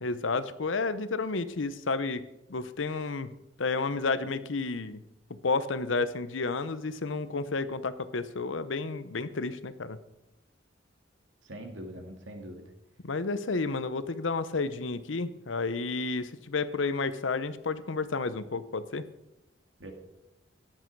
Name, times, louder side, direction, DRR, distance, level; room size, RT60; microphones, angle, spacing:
voice 1, 0.0-2.2 2.5-3.3 3.6-5.0 5.4-10.0 13.0-19.0, left 3 dB, 85° left, 13 dB, 0.8 m, -31 dB
voice 2, 11.5-12.6 19.8-19.9, equal, 80° right, 4 dB, 2.2 m, -42 dB
15.5 x 11.0 x 4.7 m, 0.92 s
head